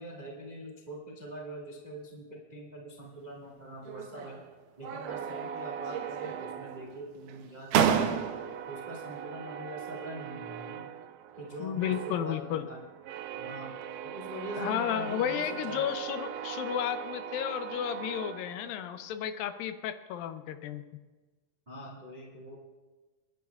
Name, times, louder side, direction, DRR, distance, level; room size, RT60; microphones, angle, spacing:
voice 1, 0.0-4.4 4.8-8.3 8.7-10.9 11.3-12.8 13.3-13.8 14.0-15.9 21.7-22.6, right 1 dB, 45° right, -2 dB, 0.5 m, -43 dB
sound 1, 3.9-4.5 4.8-5.6 5.9-6.7 7.3-7.4 7.7-8.7, right 8 dB, 75° right, 2.0 m, -30 dB
sound 2, 5.1-7.5 7.9-19.1, right 8 dB, 90° right, 2.4 m, -41 dB
voice 2, 11.6-12.7 14.6-20.8, left 10 dB, 80° left, 10 dB, 2.4 m, -33 dB
29.5 x 10.5 x 2.4 m, 1.3 s
omnidirectional pair, 4.1 m